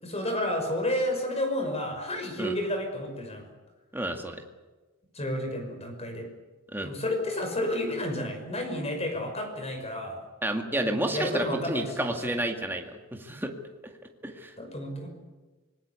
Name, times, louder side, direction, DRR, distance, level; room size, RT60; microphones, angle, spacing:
voice 1, 0.0-3.5 5.1-6.3 6.8-10.2 10.8-12.4 14.6-15.1, left 1 dB, 30° left, 5 dB, 5.9 m, -31 dB
voice 2, 3.9-4.4 6.7-6.9 10.4-12.8 13.1-13.5 14.2-14.5, right 1 dB, 10° right, 3 dB, 2.1 m, -30 dB
26.0 x 20.0 x 8.3 m, 1.2 s
head